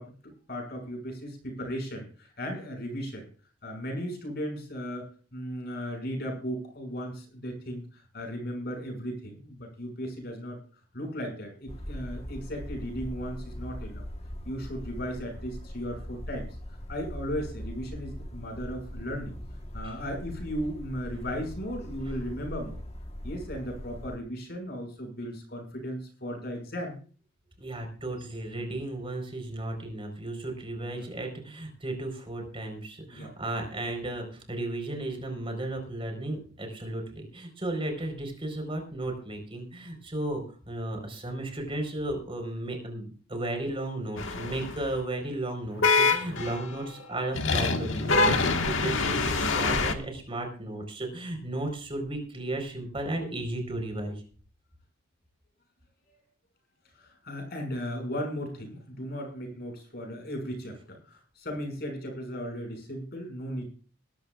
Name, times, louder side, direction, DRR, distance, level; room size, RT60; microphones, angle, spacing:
voice 1, 0.0-3.3 3.6-10.6 10.9-14.0 14.4-16.5 16.9-19.4 19.7-22.8 23.2-27.0 30.9-31.1 33.1-33.3 33.6-33.7 57.0-63.7, equal, 50° left, 4 dB, 6.1 m, -36 dB
sound 1, 11.7-24.2, equal, 30° left, 1.3 m, -40 dB
voice 2, 27.6-54.2, right 1 dB, 25° right, 4 dB, 4.4 m, -34 dB
sound 2, 44.2-44.9 45.8-46.8 47.3-49.9, left 3 dB, 70° left, 1.6 m, -25 dB
21.0 x 13.5 x 2.4 m, 0.40 s
head